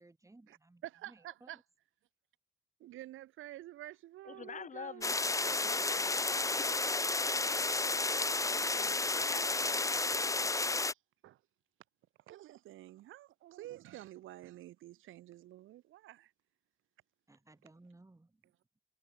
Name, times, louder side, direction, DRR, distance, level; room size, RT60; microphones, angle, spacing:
voice 1, 0.0-1.6 17.3-18.4, right 2 dB, 15° right, 5.9 m, -60 dB
voice 2, 0.8-1.6 2.8-5.1 6.3-6.4 7.4-8.9 10.8-11.0 11.2-11.4 12.3-16.3, right 15 dB, 85° right, 4.7 m, -50 dB
voice 3, 4.3-7.6 8.9-10.2, left 6 dB, 40° left, 2.0 m, -50 dB
sound 1, 5.0-10.9, left 3 dB, 15° left, 1.0 m, -32 dB
cardioid pair, 90°, 20 cm